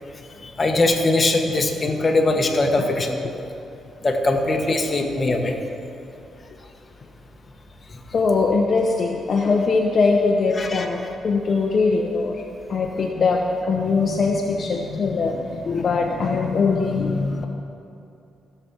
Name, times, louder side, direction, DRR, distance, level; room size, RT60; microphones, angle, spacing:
voice 1, 0.6-3.4 4.0-5.5 10.6-10.9, left 2 dB, 30° left, 2 dB, 1.3 m, -21 dB
voice 2, 8.1-12.4 12.7-17.5, left 4 dB, 45° left, 1 dB, 0.9 m, -21 dB
16.0 x 6.9 x 6.0 m, 2.6 s
cardioid pair, 105°, 0 cm